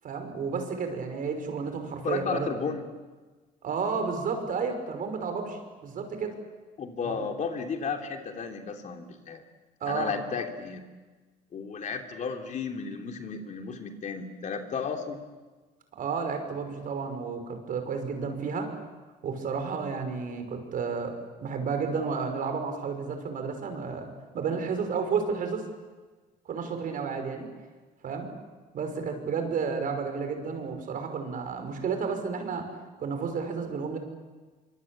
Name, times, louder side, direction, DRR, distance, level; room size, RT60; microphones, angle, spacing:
voice 1, 0.0-2.6 3.6-6.3 7.0-7.2 9.8-10.1 16.0-18.7 19.2-21.1 21.4-24.1 24.3-25.6 26.5-27.5 28.0-28.3 28.7-32.7 33.0-34.0, right 5 dB, 55° right, 6 dB, 5.7 m, -31 dB
voice 2, 2.0-2.8 6.8-9.4 9.8-10.9 11.5-15.2, left 5 dB, 45° left, 4 dB, 3.2 m, -33 dB
25.0 x 24.5 x 8.8 m, 1.3 s
cardioid pair, 110°, 17 cm